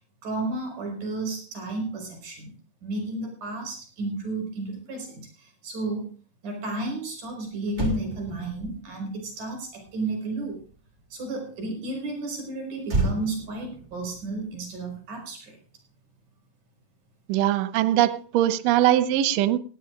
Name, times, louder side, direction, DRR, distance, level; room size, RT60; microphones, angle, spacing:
voice 1, 0.2-2.5 2.8-6.1 6.4-10.6 11.1-15.6, right 2 dB, 85° right, 3 dB, 6.8 m, -32 dB
Motor vehicle (road), 7.3-7.4 7.7-11.2 12.8-15.4 15.7-16.0, right 2 dB, 25° right, 2.2 m, -33 dB
voice 2, 17.3-19.6, right 12 dB, 70° right, 13 dB, 1.8 m, -21 dB
18.5 x 17.0 x 2.5 m, 0.38 s
omnidirectional pair, 3.6 m